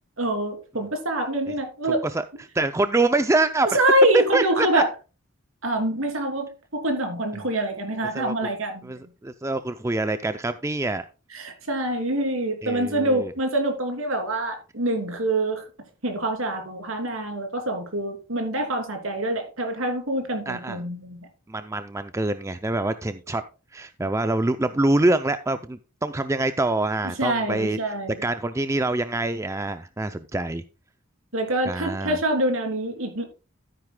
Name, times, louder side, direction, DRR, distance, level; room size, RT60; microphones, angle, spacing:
voice 1, 0.2-2.0 3.7-4.9 5.6-9.0 11.3-15.6 16.0-21.3 27.2-28.2 31.3-33.2, right 1 dB, 70° right, 3.0 m, -25 dB
voice 2, 1.9-3.7 4.1-4.8 8.1-8.3 8.8-11.0 12.6-13.3 20.5-20.8 21.5-23.4 23.7-27.8 28.2-30.6 31.7-32.2, right 2 dB, 15° right, 0.4 m, -25 dB
13.0 x 9.7 x 2.2 m
head